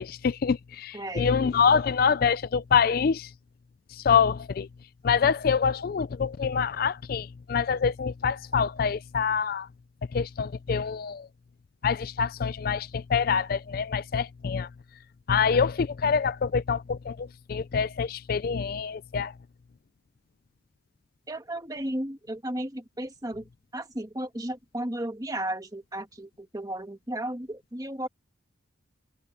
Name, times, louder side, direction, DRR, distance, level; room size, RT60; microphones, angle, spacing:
voice 1, 0.0-3.3 3.9-4.7 5.0-9.7 10.1-11.3 11.8-14.7 15.3-19.3, left 6 dB, 45° left, 0.3 m, -26 dB
voice 2, 0.9-1.3 21.3-28.1, right 1 dB, 20° right, 1.4 m, -34 dB
head